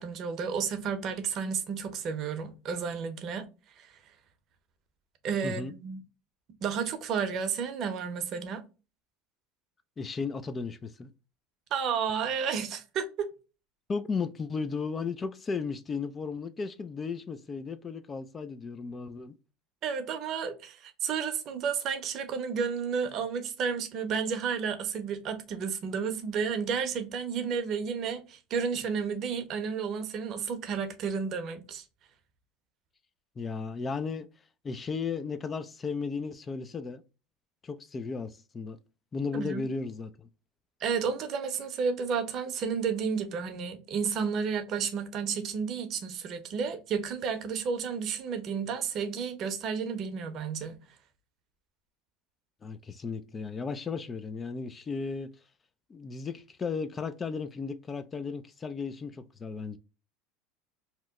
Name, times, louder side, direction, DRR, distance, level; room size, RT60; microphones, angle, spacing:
voice 1, 0.0-3.5 3.8-3.9 5.2-6.0 6.6-8.6 11.7-13.3 19.8-31.8 39.3-39.6 40.8-50.8, right 6 dB, 50° right, 0.7 m, -32 dB
voice 2, 10.0-11.1 13.9-19.4 33.4-34.3 34.6-37.0 37.6-38.8 39.1-40.3 52.6-55.3 55.9-59.8, left 5 dB, 25° left, 0.3 m, -35 dB
2.9 x 2.1 x 3.5 m
supercardioid pair, 105°, 0 cm